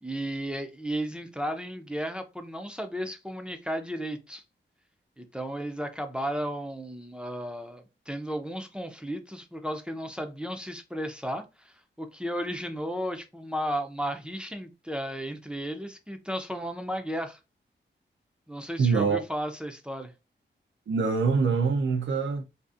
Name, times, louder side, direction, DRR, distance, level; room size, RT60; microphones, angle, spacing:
voice 1, 0.0-4.4 5.2-17.4 18.5-20.1, equal, 5° right, 0.4 m, -34 dB
voice 2, 18.8-19.2 20.9-22.4, right 5 dB, 80° right, 0.5 m, -24 dB
2.6 x 2.4 x 2.4 m
wide cardioid pair, 90°, 19 cm